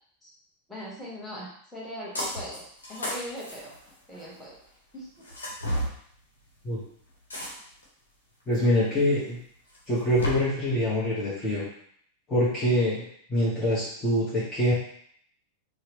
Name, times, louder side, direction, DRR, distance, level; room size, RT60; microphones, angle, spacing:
voice 1, 0.7-2.6 2.9-3.7 4.1-4.6 4.9-5.1, equal, 5° left, -7 dB, 1.5 m, -39 dB
sound 1, 2.2-2.6 2.8-4.4 5.2-5.9 7.3-7.8 8.5-8.6 9.7-10.3, equal, 70° left, 1.1 m, -32 dB
voice 2, 8.5-9.4 9.9-11.6 12.3-14.7, equal, 20° left, -9 dB, 1.2 m, -25 dB
4.6 x 2.2 x 2.9 m, 0.64 s
figure-of-eight pair, 90°, 0 cm